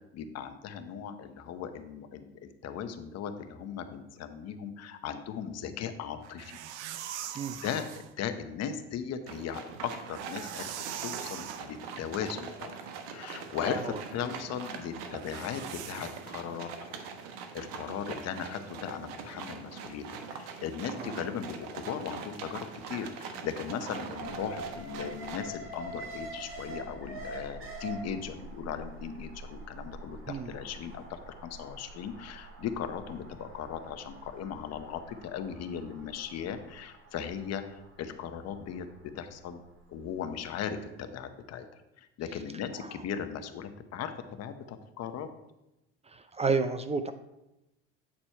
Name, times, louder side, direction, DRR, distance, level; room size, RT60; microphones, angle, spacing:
voice 1, 0.1-6.6 7.5-10.7 11.0-12.8 13.1-17.0 17.5-39.6 39.9-44.1 44.4-45.3, left 8 dB, 50° left, 9 dB, 0.9 m, -38 dB
sound 1, 6.2-8.1 9.9-11.7 15.1-16.4, right 10 dB, 85° right, 0.6 m, -41 dB
sound 2, 9.3-25.4, right 6 dB, 70° right, 1.1 m, -43 dB
Alarm, 24.1-40.2 40.6-40.7, right 2 dB, 40° right, 1.9 m, -45 dB
voice 2, 46.4-47.1, right 4 dB, 20° right, 10 dB, 0.4 m, -29 dB
8.7 x 4.3 x 4.4 m, 0.92 s
hypercardioid pair, 85°, 33 cm